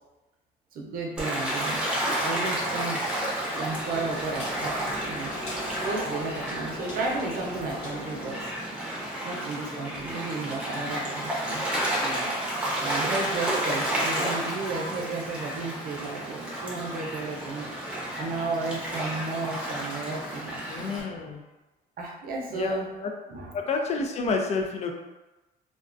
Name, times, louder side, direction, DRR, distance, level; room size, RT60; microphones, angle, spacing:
voice 1, 0.7-1.8 2.2-3.1 3.5-8.5 9.2-11.6 12.0-17.7 18.2-20.6 22.0-22.9 23.3-23.6, right 3 dB, 60° right, -1 dB, 0.6 m, -33 dB
Gull seagull / Waves surf, 1.2-21.0, right 1 dB, 5° right, 0.7 m, -31 dB
sound 1, 3.2-8.7, left 1 dB, 75° left, 1.0 m, -40 dB
voice 2, 20.7-21.4 22.5-23.1 23.5-24.9, left 4 dB, 40° left, 3 dB, 0.4 m, -29 dB
2.3 x 2.2 x 2.5 m, 1.1 s
cardioid pair, 110°, 17 cm